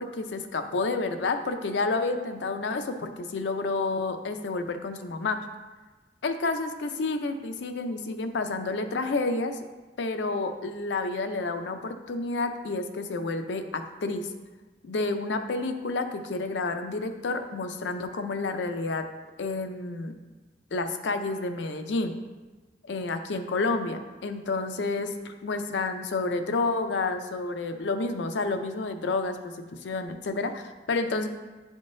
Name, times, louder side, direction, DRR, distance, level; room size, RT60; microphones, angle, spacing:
voice 1, 0.0-5.4 6.2-9.6 10.0-14.3 14.8-19.1 19.4-20.1 20.7-22.1 22.9-29.5 29.8-31.3, left 3 dB, 90° left, 7 dB, 0.5 m, -30 dB
10.5 x 3.6 x 2.6 m, 1.2 s
head